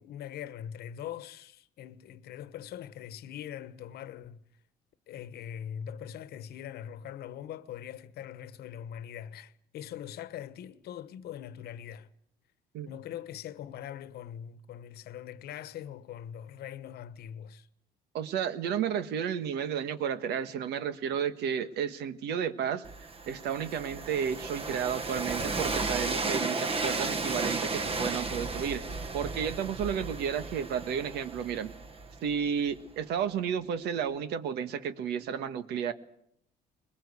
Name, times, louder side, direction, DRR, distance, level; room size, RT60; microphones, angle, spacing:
voice 1, 0.0-4.4 5.1-12.1 12.8-17.7, left 10 dB, 70° left, 1.2 m, -42 dB
voice 2, 18.1-22.9 23.3-28.8 29.1-31.7 32.2-35.9, right 8 dB, 80° right, 1.4 m, -32 dB
Train, 22.8-32.7, right 3 dB, 35° right, 1.5 m, -34 dB
21.5 x 20.5 x 8.3 m
cardioid pair, 110°, 17 cm